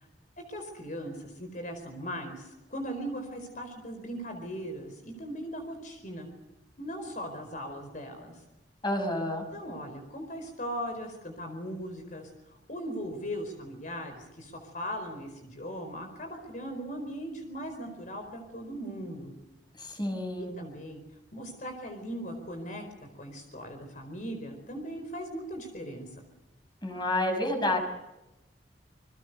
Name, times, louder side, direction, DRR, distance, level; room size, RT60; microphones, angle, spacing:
voice 1, 0.4-6.3 6.8-8.3 9.5-12.3 12.7-19.3 20.4-21.0 21.3-22.8 23.2-26.1, equal, 45° left, 5 dB, 4.6 m, -39 dB
voice 2, 8.8-9.4 19.8-20.5 26.8-27.8, left 1 dB, 25° left, 4 dB, 6.2 m, -29 dB
29.0 x 22.5 x 6.7 m, 0.94 s
head